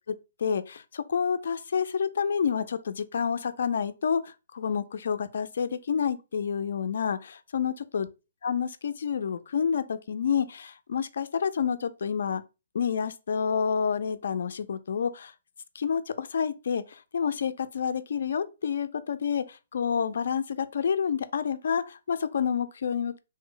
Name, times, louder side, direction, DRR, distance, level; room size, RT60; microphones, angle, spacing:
voice 1, 0.4-8.1 8.4-12.4 12.7-15.3 15.7-23.2, left 7 dB, 65° left, 0.3 m, -29 dB
3.1 x 2.0 x 3.8 m
hypercardioid pair, 165°, 0 cm